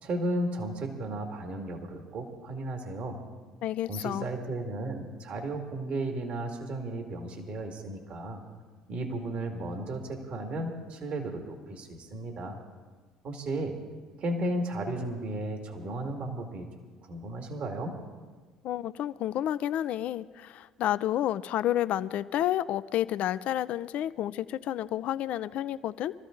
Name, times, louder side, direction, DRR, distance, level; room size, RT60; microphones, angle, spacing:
voice 1, 0.0-3.2 3.9-8.4 8.9-12.6 13.2-13.8 14.2-16.7 17.1-18.0, right 1 dB, 55° right, 3 dB, 2.2 m, -34 dB
voice 2, 3.6-4.3 18.6-26.1, left 12 dB, 60° left, 15 dB, 0.4 m, -30 dB
23.0 x 14.0 x 3.9 m, 1.4 s
hypercardioid pair, 65°, 3 cm